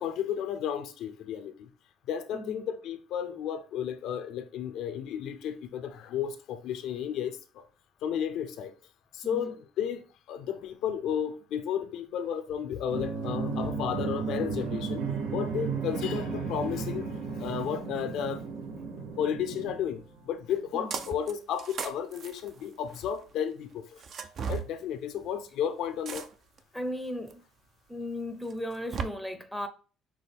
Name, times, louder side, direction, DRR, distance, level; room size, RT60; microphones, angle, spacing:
voice 1, 0.0-1.7 2.1-7.6 8.0-8.7 9.1-18.4 19.2-24.0 24.5-26.3, left 8 dB, 70° left, 0.6 m, -33 dB
voice 2, 2.3-2.6 9.2-9.6 18.8-18.9 20.7-21.1 24.5-24.6 26.7-27.4 27.9-29.7, left 1 dB, ahead, 0.6 m, -36 dB
sound 1, 12.9-20.5, right 5 dB, 85° right, 0.8 m, -34 dB
sound 2, 20.9-21.3 21.6-23.1 24.0-24.7 26.1-26.6 27.3-27.4 28.5-29.0, right 6 dB, 45° right, 0.5 m, -36 dB
6.0 x 2.2 x 3.4 m
cardioid pair, 115°, 0 cm